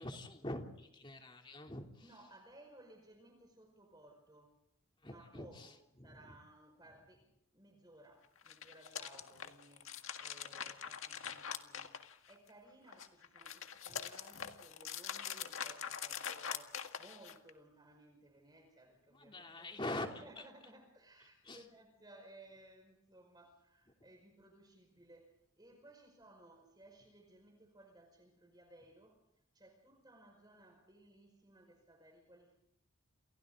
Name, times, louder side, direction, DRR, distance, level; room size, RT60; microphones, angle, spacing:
voice 1, 0.0-1.9 5.0-5.7 6.0-6.4 13.9-14.0 19.1-20.4 21.4-21.6, left 1 dB, 25° left, 3 dB, 3.1 m, -44 dB
voice 2, 2.0-4.5 5.0-19.7 20.1-29.2 29.5-32.6, right 1 dB, 20° right, 4 dB, 5.3 m, -60 dB
sound 1, 8.4-12.5 12.9-17.5, left 8 dB, 75° left, 1.8 m, -44 dB
29.0 x 29.0 x 3.9 m, 0.77 s
head